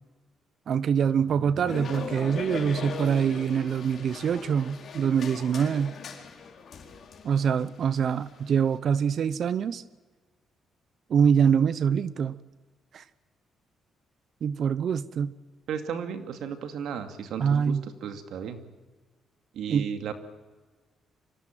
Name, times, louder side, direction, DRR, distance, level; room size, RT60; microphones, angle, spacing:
voice 1, 0.7-6.0 7.2-9.8 11.1-12.4 12.9-13.0 14.4-15.3 17.4-17.9 19.7-19.9, right 7 dB, 60° right, 17 dB, 0.8 m, -25 dB
sound 1, 1.6-8.8, left 5 dB, 55° left, 4.2 m, -39 dB
voice 2, 15.7-18.6 19.5-20.1, right 7 dB, 75° right, 7 dB, 2.4 m, -35 dB
25.0 x 17.0 x 9.1 m, 1.4 s
cardioid pair, 90°, 0 cm